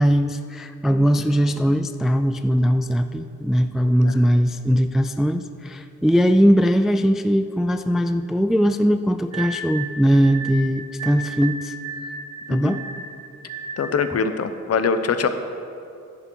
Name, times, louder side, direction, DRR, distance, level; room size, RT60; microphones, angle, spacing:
voice 1, 0.0-11.7 12.5-12.8, equal, ahead, 9 dB, 0.3 m, -20 dB
voice 2, 4.0-4.4 12.5-12.8 13.8-15.3, left 5 dB, 55° left, 9 dB, 0.8 m, -23 dB
sound 1, 9.3-14.2, right 3 dB, 65° right, 1.3 m, -34 dB
10.5 x 8.9 x 4.6 m, 2.5 s
cardioid pair, 85°, 30 cm